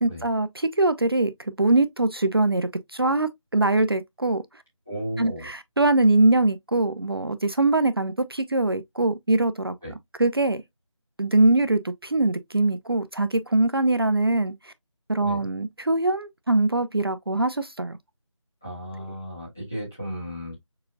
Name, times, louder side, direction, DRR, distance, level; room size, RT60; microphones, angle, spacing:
voice 1, 0.0-4.4 5.2-9.8 10.2-10.6 11.2-14.7 15.1-18.0, right 2 dB, 50° right, 0.5 m, -22 dB
voice 2, 4.9-5.5 9.8-9.9 15.2-15.5 18.6-20.6, equal, 5° left, 0.9 m, -34 dB
6.6 x 2.6 x 2.3 m
figure-of-eight pair, 175°, 16 cm